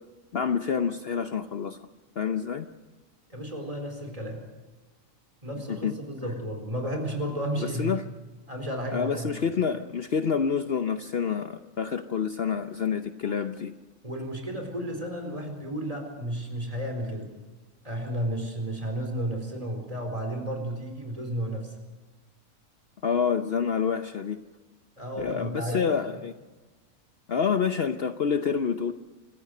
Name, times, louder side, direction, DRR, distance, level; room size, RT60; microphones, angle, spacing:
voice 1, 0.3-1.8 2.2-2.7 5.7-5.9 7.6-8.0 8.9-13.7 23.0-24.4 25.2-26.3 27.3-28.9, left 6 dB, 55° left, 9 dB, 0.9 m, -27 dB
voice 2, 3.3-4.4 5.4-7.9 8.5-9.4 14.0-17.3 17.8-21.8 25.0-25.9, right 1 dB, 25° right, 3 dB, 4.3 m, -32 dB
27.0 x 14.5 x 6.7 m, 1.2 s
omnidirectional pair, 1.4 m